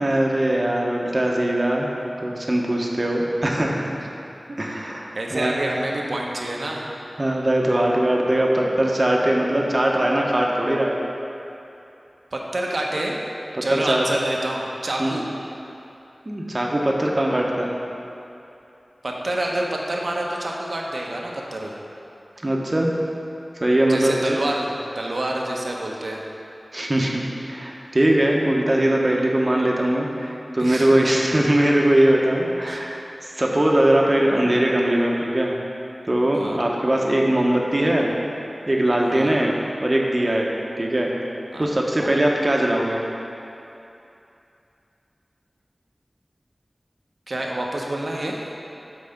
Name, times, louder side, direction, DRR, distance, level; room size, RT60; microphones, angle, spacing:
voice 1, 0.0-1.9 2.2-3.9 4.6-5.6 7.2-11.0 13.5-14.0 15.0-15.1 16.2-17.8 22.4-22.9 23.6-24.1 26.7-27.2 27.5-33.0 33.4-35.5 36.1-38.1 38.7-39.5 39.8-40.5 40.8-41.1 41.6-43.0, right 1 dB, 40° right, -1 dB, 1.0 m, -21 dB
voice 2, 5.1-6.8 12.3-13.3 13.6-15.3 19.0-21.8 23.9-24.7 24.9-26.2 30.6-31.1 32.7-32.8 36.3-36.6 39.1-39.4 41.5-41.7 42.0-42.3 47.3-48.4, right 1 dB, 65° right, -1 dB, 0.9 m, -27 dB
5.8 x 4.8 x 6.5 m, 2.8 s
wide cardioid pair, 50°, 0 cm